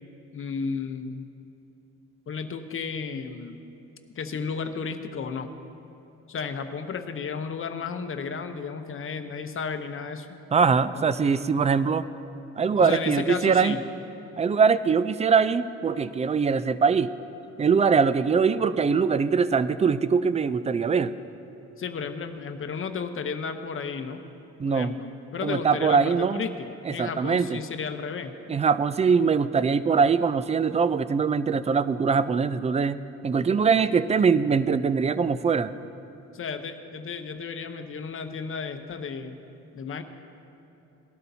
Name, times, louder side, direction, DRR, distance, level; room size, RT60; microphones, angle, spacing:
voice 1, 0.3-1.2 2.3-3.6 4.2-5.5 6.3-10.3 10.9-11.1 12.8-13.8 21.8-24.2 24.7-28.3 36.3-39.4 39.7-40.0, left 5 dB, 45° left, 8 dB, 0.8 m, -33 dB
voice 2, 10.5-12.0 12.6-13.8 14.4-17.1 17.6-21.1 24.6-24.9 25.4-26.4 26.9-27.6 28.5-35.7, right 5 dB, 25° right, 15 dB, 0.4 m, -22 dB
19.0 x 12.0 x 2.7 m, 2.9 s
cardioid pair, 90°, 30 cm